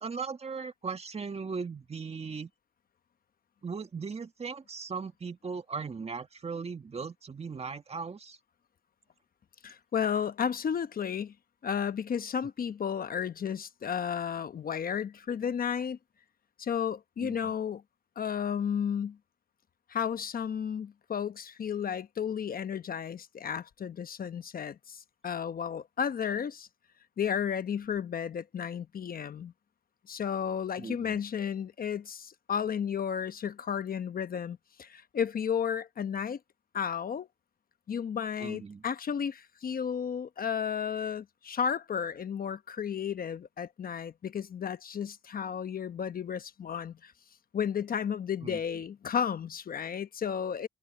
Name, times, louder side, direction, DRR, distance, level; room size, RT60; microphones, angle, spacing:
voice 1, 0.0-2.5 3.6-8.4 17.2-17.5 30.8-31.2 38.4-38.8 48.4-48.6, right 5 dB, 30° right, 1.9 m, -38 dB
voice 2, 9.6-11.3 11.6-16.0 16.6-17.8 18.2-19.2 19.9-26.7 27.2-29.5 30.1-36.4 36.7-37.3 37.9-47.1 47.5-50.7, left 7 dB, 45° left, 1.1 m, -33 dB
cardioid pair, 90°, 20 cm